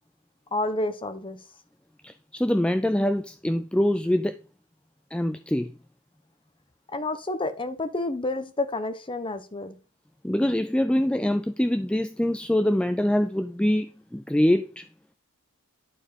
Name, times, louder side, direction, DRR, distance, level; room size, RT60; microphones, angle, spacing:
voice 1, 0.5-1.4 6.9-9.8, left 2 dB, 25° left, 1.0 m, -29 dB
voice 2, 2.0-4.4 5.1-5.7 10.2-14.9, left 1 dB, 5° left, 0.4 m, -24 dB
11.5 x 4.5 x 5.2 m
head